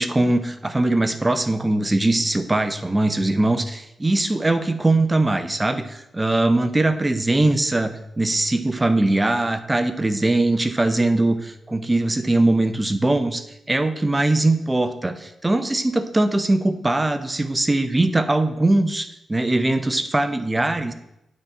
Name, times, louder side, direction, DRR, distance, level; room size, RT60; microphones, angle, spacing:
voice 1, 0.0-20.9, right 2 dB, 15° right, 10 dB, 0.6 m, -21 dB
8.2 x 4.1 x 5.8 m, 0.84 s
cardioid pair, 105°, 0 cm